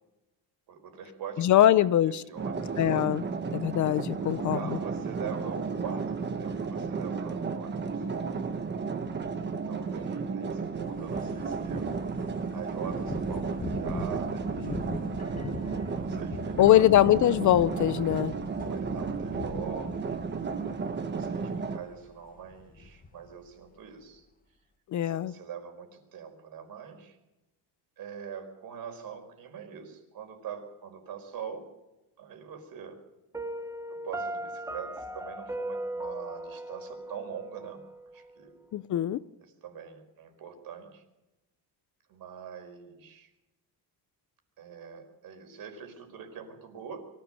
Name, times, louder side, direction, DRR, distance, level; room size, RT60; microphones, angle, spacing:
voice 1, 0.7-1.7 2.0-3.1 4.2-8.0 9.4-11.9 12.5-14.8 15.6-16.9 18.6-20.2 21.0-24.2 25.0-27.2 28.0-31.7 32.2-33.0 33.9-37.8 38.1-38.5 39.4-41.0 42.1-43.3 44.6-47.1, right 7 dB, 55° right, 4.8 m, -43 dB
voice 2, 1.4-2.2 2.8-3.2 3.5-4.8 16.6-18.4 24.9-25.3 38.7-39.2, left 12 dB, 45° left, 0.6 m, -22 dB
sound 1, 2.4-21.8, right 5 dB, 25° right, 1.3 m, -33 dB
sound 2, 10.8-22.1 22.4-23.3, left 4 dB, 20° left, 1.6 m, -42 dB
Piano, 33.3-38.3, right 1 dB, 5° right, 0.8 m, -38 dB
23.5 x 15.5 x 7.7 m
cardioid pair, 160°, 42 cm